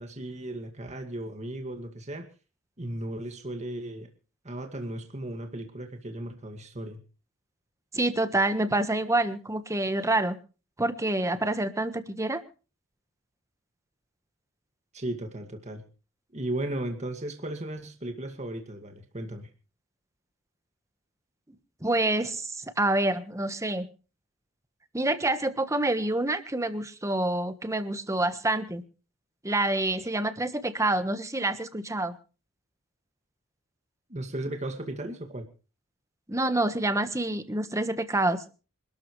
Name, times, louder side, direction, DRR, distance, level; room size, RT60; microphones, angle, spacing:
voice 1, 0.0-2.3 2.8-4.1 4.4-7.0 14.9-15.8 16.3-19.5 34.1-35.5, right 1 dB, 35° right, 5 dB, 2.1 m, -36 dB
voice 2, 7.9-10.4 10.8-12.4 21.8-23.9 24.9-28.8 29.4-32.1 36.3-38.4, right 2 dB, 15° right, 10 dB, 1.3 m, -27 dB
26.5 x 13.0 x 3.2 m, 0.36 s
head